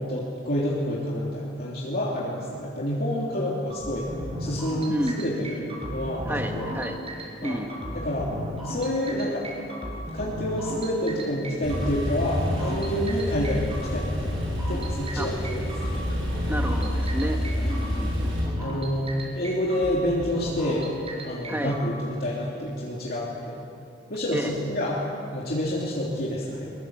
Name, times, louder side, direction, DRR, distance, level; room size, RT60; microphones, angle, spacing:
voice 1, 0.0-4.1 4.4-6.7 7.4-7.6 7.9-8.3 8.6-9.5 10.1-14.4 14.7-16.0 17.6-17.7 18.6-21.0 21.2-23.6 24.1-26.7, left 1 dB, 55° left, -5 dB, 3.2 m, -28 dB
sound 1, 3.7-21.8, equal, 30° right, 5.3 m, -35 dB
voice 2, 6.3-7.0 7.4-7.7 15.2-15.3 16.5-17.4 17.7-18.6 21.5-21.8 24.3-24.5, equal, 10° right, 4 dB, 1.8 m, -30 dB
Male speech man speaking / Car / Idling, 11.6-18.4, equal, 90° right, 7.3 m, -29 dB
22.0 x 22.0 x 7.8 m, 2.6 s
head